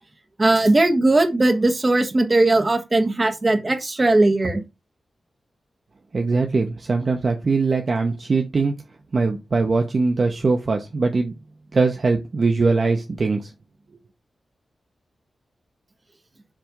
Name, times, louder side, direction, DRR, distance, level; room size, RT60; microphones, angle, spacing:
voice 1, 0.4-4.6, right 2 dB, 25° right, 1.4 m, -18 dB
voice 2, 6.1-8.7 9.1-11.3 11.7-13.5, right 3 dB, 40° right, 0.9 m, -21 dB
7.5 x 3.4 x 5.1 m
wide cardioid pair, 175°, 0 cm